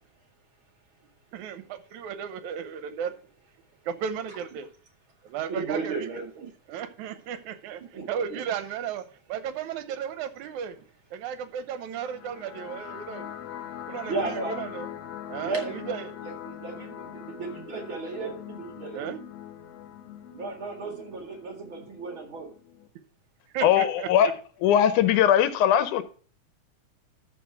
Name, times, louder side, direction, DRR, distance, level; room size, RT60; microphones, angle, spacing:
voice 1, 1.3-3.2 3.9-4.7 5.2-5.9 6.7-7.8 8.1-10.8 11.1-13.4 13.9-14.9 15.3-16.2 17.0-17.2 18.9-19.2 23.5-24.3, right 8 dB, 80° right, 2.2 m, -34 dB
voice 2, 5.5-6.5 7.9-8.4 14.1-14.6 15.4-15.9 16.2-19.2 20.3-22.5, right 4 dB, 45° right, 2.5 m, -34 dB
sound 1, 11.9-22.9, left 10 dB, 70° left, 1.9 m, -42 dB
voice 3, 23.6-24.3 24.6-26.0, left 10 dB, 90° left, 2.3 m, -20 dB
13.0 x 4.4 x 4.7 m
omnidirectional pair, 3.4 m